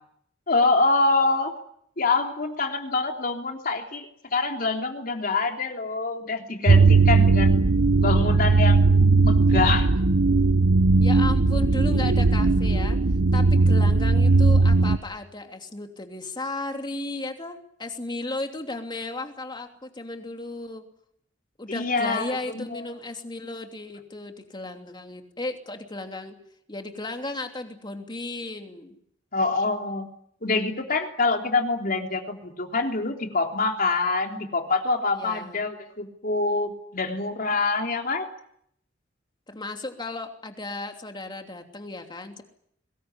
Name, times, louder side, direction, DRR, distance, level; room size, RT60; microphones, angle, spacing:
voice 1, 0.5-1.5 2.0-7.6 8.0-8.9 9.2-9.9 21.7-22.8 29.3-30.1 30.4-38.3, left 3 dB, 50° left, 3 dB, 3.4 m, -25 dB
sound 1, 6.7-15.0, right 3 dB, 80° right, 1.0 m, -18 dB
voice 2, 11.0-13.0 13.3-20.9 21.6-26.4 26.7-29.0 35.2-35.6 39.5-42.4, left 2 dB, 25° left, 4 dB, 3.0 m, -35 dB
23.5 x 20.5 x 9.8 m, 0.70 s
head